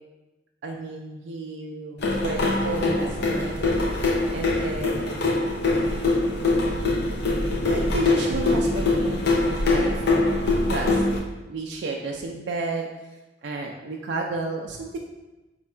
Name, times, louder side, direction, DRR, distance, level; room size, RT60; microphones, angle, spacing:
voice 1, 0.6-3.6 4.3-5.1 7.6-10.0 10.7-11.0 11.5-12.9 13.4-15.0, right 2 dB, 75° right, 0 dB, 0.4 m, -32 dB
sound 1, 2.0-11.2, left 2 dB, 60° left, 0.5 m, -23 dB
4.4 x 2.4 x 4.2 m, 1.1 s
head